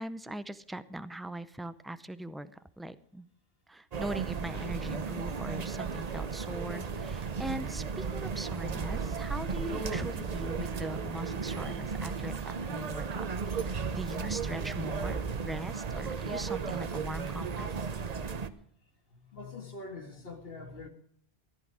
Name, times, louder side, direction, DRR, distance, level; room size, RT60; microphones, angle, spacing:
voice 1, 0.0-2.5 2.8-3.3 3.7-12.4 12.7-17.9, right 1 dB, ahead, 13 dB, 0.3 m, -40 dB
sound 1, 3.9-18.5, right 5 dB, 45° right, 0.8 m, -35 dB
voice 2, 19.1-20.9, left 3 dB, 65° left, 4 dB, 2.1 m, -44 dB
15.0 x 11.5 x 4.8 m, 0.62 s
omnidirectional pair, 1.0 m